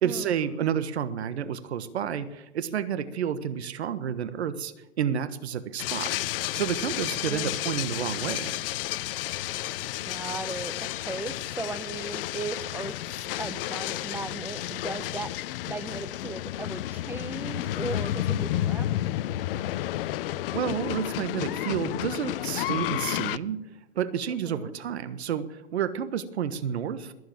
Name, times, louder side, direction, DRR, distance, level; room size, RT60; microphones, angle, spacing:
voice 1, 0.0-6.1 6.5-8.5 20.5-23.6 23.9-27.1, right 8 dB, 80° right, 13 dB, 1.3 m, -30 dB
sound 1, 5.8-23.4, left 14 dB, 55° left, 0.6 m, -31 dB
voice 2, 10.1-19.0 24.3-24.7, right 3 dB, 5° right, 12 dB, 0.9 m, -37 dB
22.0 x 7.9 x 7.6 m, 0.99 s
hypercardioid pair, 125°, 33 cm